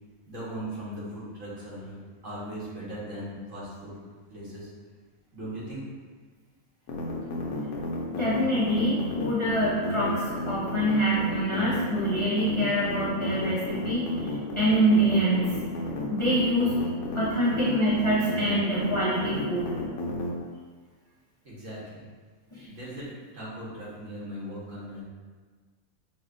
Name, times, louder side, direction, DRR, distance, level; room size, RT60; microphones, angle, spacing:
voice 1, 0.3-2.0 2.2-4.0 4.3-4.7 5.3-5.8 21.4-22.0 22.6-25.0, right 1 dB, 60° right, -8 dB, 1.6 m, -38 dB
sound 1, 6.9-20.3, left 1 dB, 80° left, 1.1 m, -32 dB
voice 2, 8.1-14.1 14.6-15.6 16.1-16.8 17.1-19.7 22.5-22.7, right 1 dB, 40° left, -9 dB, 0.4 m, -25 dB
6.2 x 2.2 x 2.5 m, 1.5 s
omnidirectional pair, 1.5 m